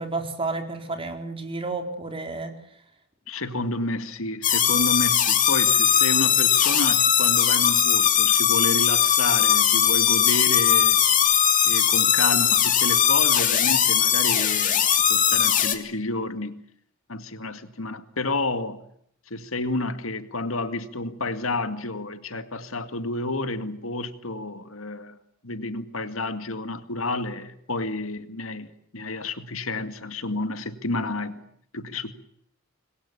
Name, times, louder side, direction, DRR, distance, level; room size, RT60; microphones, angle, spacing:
voice 1, 0.0-2.5, right 3 dB, 25° right, 4.3 m, -31 dB
voice 2, 3.3-11.0 11.6-16.6 17.1-18.8 19.3-25.2 25.4-31.4 31.7-32.1, left 2 dB, 80° left, 2.2 m, -30 dB
sound 1, 4.4-15.7, left 9 dB, 40° left, 2.9 m, -20 dB
27.0 x 22.0 x 8.4 m
head